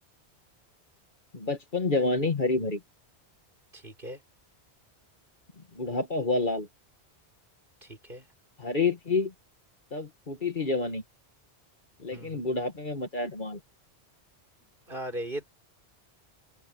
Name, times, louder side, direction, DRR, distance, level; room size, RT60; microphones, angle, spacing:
voice 1, 1.3-2.8 5.8-6.7 8.6-9.3 9.9-11.0 12.0-13.6, left 3 dB, 50° left, 1.7 m, -28 dB
voice 2, 3.7-4.2 7.8-8.3 12.1-12.4 14.6-15.4, right 1 dB, 50° right, 5.4 m, -38 dB
open air
omnidirectional pair, 1.1 m